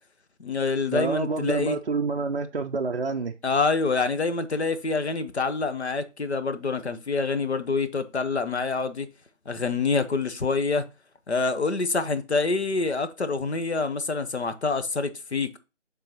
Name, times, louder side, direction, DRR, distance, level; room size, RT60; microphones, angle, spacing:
voice 1, 0.4-1.8 3.4-9.1 9.5-10.9 11.3-15.6, left 4 dB, 60° left, 1.0 m, -26 dB
voice 2, 0.9-3.3, right 4 dB, 50° right, 0.5 m, -27 dB
11.0 x 3.8 x 2.9 m
figure-of-eight pair, 165°, 37 cm